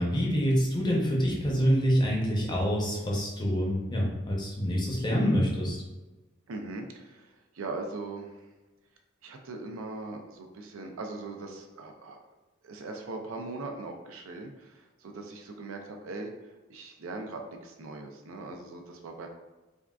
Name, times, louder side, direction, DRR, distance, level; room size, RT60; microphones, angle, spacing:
voice 1, 0.0-5.8, equal, 20° left, -3 dB, 0.6 m, -26 dB
voice 2, 6.5-8.5 9.2-12.2 12.6-16.3 16.7-19.3, right 3 dB, 90° right, 3 dB, 0.4 m, -40 dB
3.6 x 2.3 x 2.3 m, 1.1 s
head